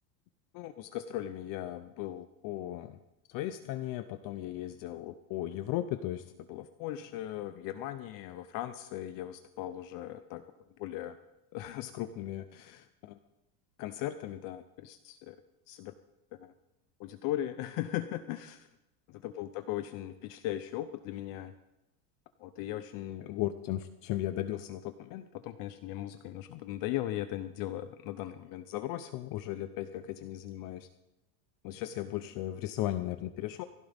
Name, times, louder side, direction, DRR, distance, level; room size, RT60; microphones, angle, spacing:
voice 1, 0.5-3.0 3.3-10.4 10.8-11.2 11.5-13.2 13.8-15.4 15.7-15.9 16.4-16.5 17.0-18.7 19.2-21.5 22.4-30.9 31.6-33.6, left 13 dB, 50° left, 10 dB, 0.8 m, -37 dB
21.5 x 15.5 x 3.6 m, 0.93 s
cardioid pair, 155°, 44 cm